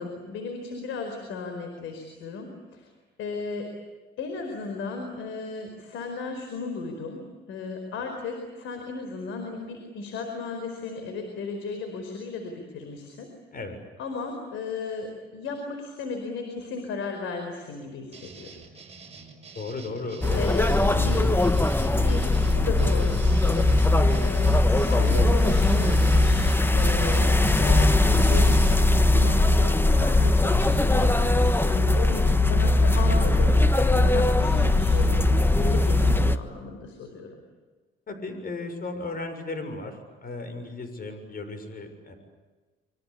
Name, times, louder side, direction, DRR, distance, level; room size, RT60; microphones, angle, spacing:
voice 1, 0.0-2.9 3.2-3.7 4.2-13.3 14.0-18.6 20.4-21.3 21.8-37.4, left 4 dB, 85° left, 5 dB, 4.8 m, -35 dB
sound 1, 18.1-28.8, right 4 dB, 30° right, 6.2 m, -46 dB
voice 2, 19.5-20.6 38.1-42.1, left 3 dB, 45° left, 8 dB, 6.8 m, -35 dB
sound 2, 20.2-36.4, left 2 dB, 10° left, 1.4 m, -20 dB
27.0 x 24.0 x 8.6 m, 1.3 s
cardioid pair, 90°, 20 cm